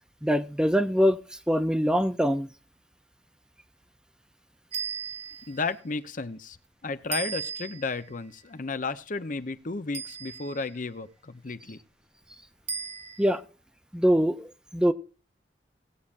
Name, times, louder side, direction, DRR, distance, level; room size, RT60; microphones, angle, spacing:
voice 1, 0.2-1.2 1.5-2.5 13.2-13.4 13.9-14.5 14.7-14.9, equal, 5° right, 0.5 m, -23 dB
sound 1, 4.7-5.6 7.1-8.0 9.9-10.7 12.7-13.4, right 7 dB, 40° right, 1.1 m, -36 dB
voice 2, 5.5-6.6 6.8-11.8, left 3 dB, 50° left, 0.8 m, -33 dB
18.5 x 8.6 x 2.5 m
head